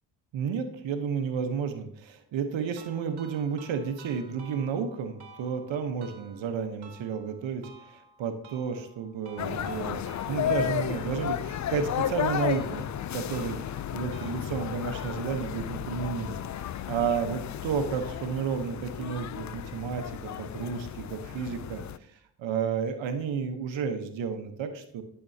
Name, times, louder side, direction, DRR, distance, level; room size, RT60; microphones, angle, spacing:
voice 1, 0.3-10.0 10.3-25.0, right 6 dB, 80° right, 7 dB, 1.0 m, -32 dB
sound 1, 2.8-15.7, right 4 dB, 60° right, 1.8 m, -53 dB
sound 2, 9.4-22.0, left 10 dB, 40° left, 0.4 m, -33 dB
12.0 x 6.9 x 2.7 m, 0.71 s
cardioid pair, 70°, 45 cm